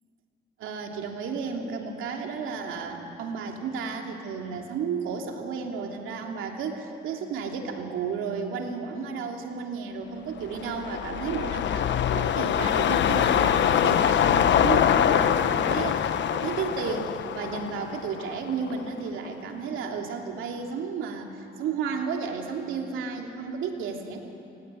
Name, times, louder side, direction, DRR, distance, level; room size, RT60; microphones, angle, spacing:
voice 1, 0.6-11.9 12.1-24.2, right 5 dB, 85° right, 2 dB, 2.9 m, -33 dB
sound 1, 10.4-18.9 19.2-19.3, left 9 dB, 65° left, 1.0 m, -24 dB
28.5 x 17.5 x 9.2 m, 2.8 s
cardioid pair, 90°, 20 cm